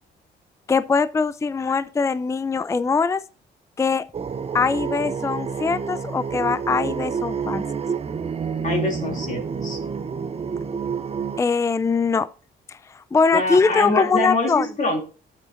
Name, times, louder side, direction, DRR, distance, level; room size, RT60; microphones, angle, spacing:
voice 1, 0.7-3.2 3.8-4.0 4.5-7.6 11.4-12.3 12.7-14.7, left 5 dB, 15° left, 0.4 m, -22 dB
sound 1, 4.1-11.4, right 6 dB, 30° right, 0.7 m, -28 dB
voice 2, 8.6-9.8 13.3-15.0, left 2 dB, 40° left, 2.7 m, -25 dB
12.0 x 7.4 x 2.5 m
cardioid pair, 90°, 20 cm